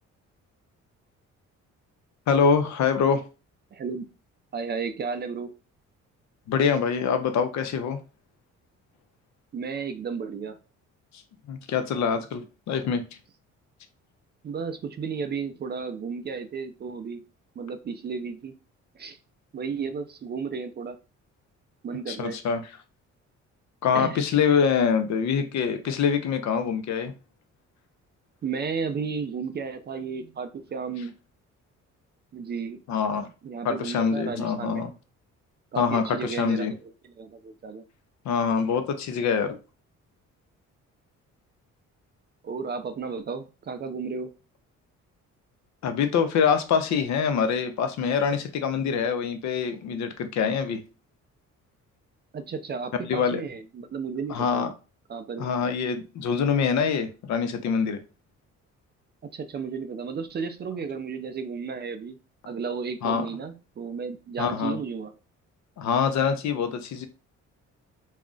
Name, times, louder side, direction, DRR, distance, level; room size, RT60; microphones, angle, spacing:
voice 1, 2.3-3.2 6.5-8.0 11.5-13.0 22.1-22.6 23.8-27.1 32.9-33.3 33.6-34.9 35.8-36.7 38.2-39.6 45.8-50.8 53.0-53.4 54.3-54.7 55.4-58.0 63.0-63.3 64.4-64.8 65.8-67.1, left 6 dB, 65° left, 0.5 m, -25 dB
voice 2, 3.7-4.1 4.5-5.5 9.5-10.6 14.4-17.2 17.6-18.5 19.0-19.2 19.5-21.0 21.8-22.4 23.9-24.2 28.4-31.1 32.3-32.8 33.4-34.8 35.7-37.8 42.4-44.3 52.3-54.7 55.1-55.5 59.3-62.2 62.4-65.1, right 5 dB, 35° right, 0.4 m, -33 dB
2.4 x 2.0 x 3.7 m
cardioid pair, 90°, 30 cm